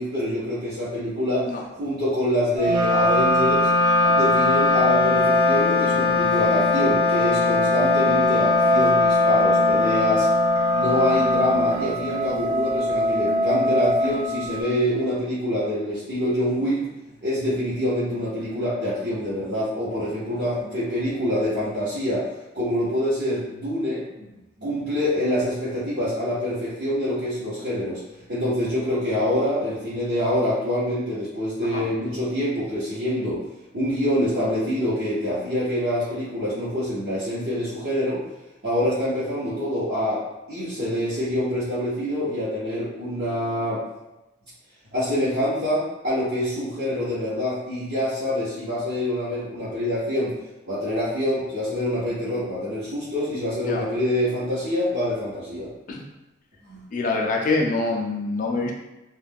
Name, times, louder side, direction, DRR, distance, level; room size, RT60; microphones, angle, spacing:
voice 1, 0.0-3.7 4.1-10.3 10.7-16.9 17.2-22.3 22.5-24.3 24.6-33.4 33.7-38.2 38.6-43.8 44.9-50.4 50.7-55.7 56.7-56.8, left 1 dB, 60° right, -12 dB, 0.8 m, -26 dB
Wind instrument woodwind instrument, 2.6-12.2, left 3 dB, 25° right, 0.3 m, -22 dB
sound 1, 2.6-14.6, equal, 40° right, 1.1 m, -24 dB
voice 2, 56.9-58.7, left 3 dB, 45° left, 0 dB, 0.4 m, -25 dB
2.3 x 2.1 x 3.4 m, 0.98 s
head